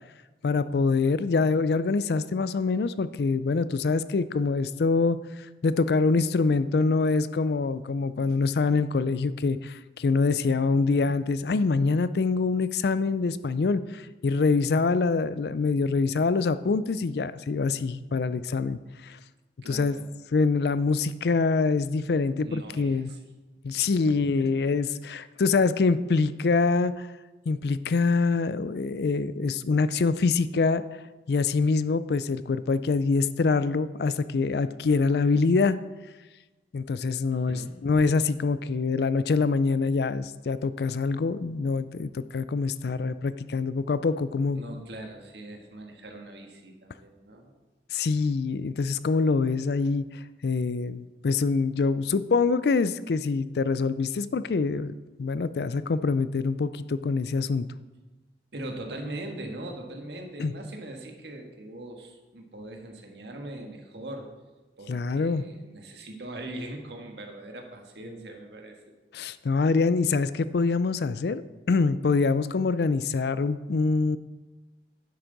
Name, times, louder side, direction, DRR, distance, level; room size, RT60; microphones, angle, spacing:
voice 1, 0.4-5.2 5.6-19.2 19.7-20.0 20.3-23.1 23.6-27.1 27.5-30.8 31.3-35.8 36.7-44.6 47.9-50.0 50.4-57.7 60.4-60.5 64.9-65.4 69.1-71.4 71.7-74.2, left 4 dB, 65° left, 15 dB, 0.4 m, -25 dB
voice 2, 19.6-20.0 22.4-23.2 24.1-24.7 37.3-37.8 44.5-47.5 58.5-64.3 64.8-68.9 69.2-69.3, right 1 dB, 75° right, 2 dB, 1.5 m, -41 dB
10.5 x 8.0 x 3.9 m, 1.2 s
head